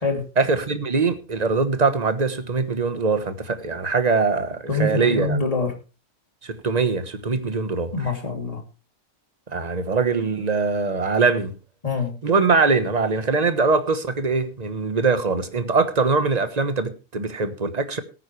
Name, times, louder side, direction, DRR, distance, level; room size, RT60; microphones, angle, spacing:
voice 1, 0.4-5.4 6.4-7.9 9.5-11.5 12.2-18.0, right 4 dB, 30° right, 1.2 m, -22 dB
voice 2, 4.7-5.7 7.9-8.6 11.8-12.1, left 3 dB, 25° left, 2.9 m, -24 dB
18.0 x 9.5 x 3.3 m
omnidirectional pair, 1.4 m